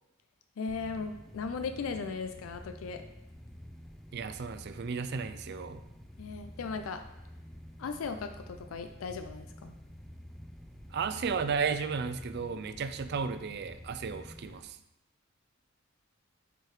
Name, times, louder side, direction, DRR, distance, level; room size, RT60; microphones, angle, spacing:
voice 1, 0.6-3.0 6.2-7.0 7.8-9.8, left 5 dB, 90° left, 7 dB, 0.4 m, -37 dB
sound 1, 0.7-14.6, equal, ahead, 0.5 m, -49 dB
voice 2, 4.1-5.9 10.9-14.8, right 5 dB, 55° right, 11 dB, 0.4 m, -34 dB
7.8 x 4.7 x 3.1 m, 0.89 s
head